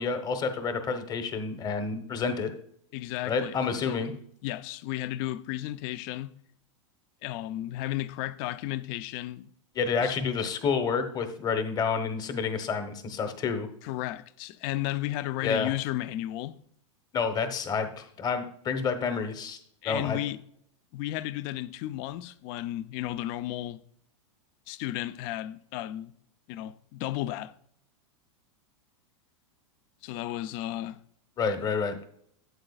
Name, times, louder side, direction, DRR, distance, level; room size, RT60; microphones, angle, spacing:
voice 1, 0.0-2.5 3.2-4.1 9.7-13.7 15.4-15.7 17.1-19.6 19.8-20.2 31.4-32.0, left 5 dB, 25° left, 1.1 m, -29 dB
voice 2, 2.9-4.1 4.4-6.3 7.2-9.5 10.0-10.2 13.8-16.6 19.8-20.4 20.9-23.8 24.7-26.1 26.5-27.5 30.0-31.0, left 14 dB, 45° left, 0.5 m, -34 dB
12.5 x 7.8 x 2.4 m
hypercardioid pair, 125°, 16 cm